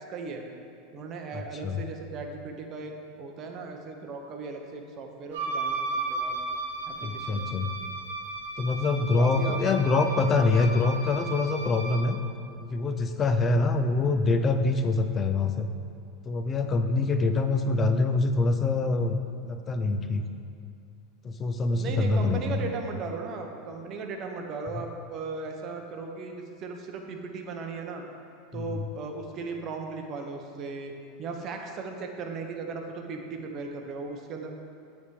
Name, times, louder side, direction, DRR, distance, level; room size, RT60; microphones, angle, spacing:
voice 1, 0.1-0.4 0.9-2.9 3.2-6.4 6.9-7.5 9.0-10.5 21.7-28.0 28.5-30.9 31.2-34.5, right 4 dB, 35° right, 3 dB, 0.8 m, -37 dB
voice 2, 1.3-1.8 7.0-7.7 8.6-12.2 12.6-15.7 16.2-20.3 21.2-22.6 28.5-28.9, left 3 dB, 25° left, 7 dB, 0.4 m, -25 dB
Wind instrument woodwind instrument, 5.3-12.1, right 3 dB, 90° right, 1.0 m, -34 dB
8.4 x 3.5 x 4.8 m, 2.5 s
supercardioid pair, 140°, 0 cm